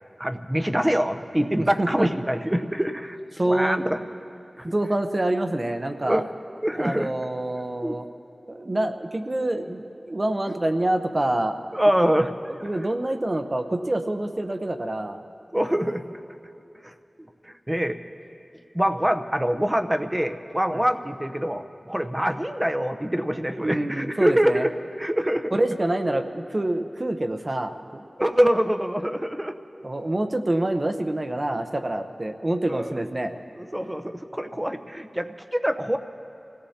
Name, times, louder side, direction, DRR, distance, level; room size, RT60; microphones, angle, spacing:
voice 1, 0.2-3.2 3.4-4.0 4.6-4.7 6.0-6.2 6.6-7.1 7.8-8.0 10.5-10.6 11.7-12.3 15.5-16.0 16.8-16.9 17.4-18.0 18.7-24.7 25.0-25.6 28.2-29.5 32.7-33.0 33.6-36.0, equal, 15° right, 7 dB, 0.8 m, -25 dB
voice 2, 1.6-2.1 3.4-3.8 4.6-6.2 6.8-8.0 8.5-11.6 12.6-15.2 20.7-20.8 23.6-24.6 25.5-28.0 29.8-33.3, right 1 dB, 45° right, 7 dB, 0.8 m, -26 dB
27.0 x 17.5 x 2.9 m, 2.7 s
wide cardioid pair, 45°, 0 cm